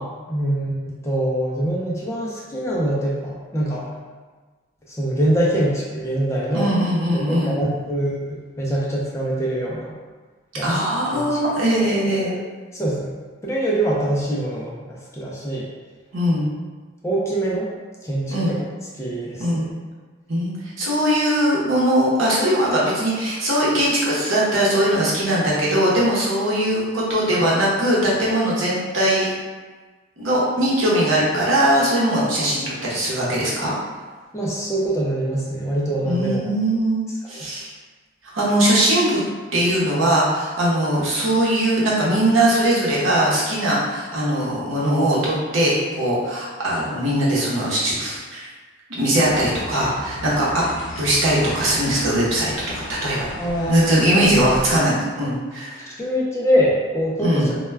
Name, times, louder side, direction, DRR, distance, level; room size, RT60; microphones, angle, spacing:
voice 1, 0.0-3.9 4.9-6.7 7.1-9.9 10.6-10.7 11.1-11.4 12.1-12.4 12.7-13.1 13.4-15.7 17.0-17.7 18.0-18.6 19.0-19.7 34.3-36.4 37.3-37.5 53.4-53.7 54.1-54.8 56.0-57.6, right 1 dB, 15° left, -5 dB, 0.3 m, -24 dB
voice 2, 6.5-7.6 10.6-12.3 16.1-16.5 18.3-18.5 19.4-19.7 20.3-29.3 30.2-33.7 36.0-37.7 38.3-39.2 39.5-48.5 49.0-50.6 51.0-53.2 53.7-55.9 57.2-57.5, right 1 dB, 85° right, -6 dB, 0.8 m, -20 dB
sound 1, 49.2-54.8, left 1 dB, 70° left, 0.5 m, -35 dB
2.2 x 2.1 x 3.2 m, 1.4 s
head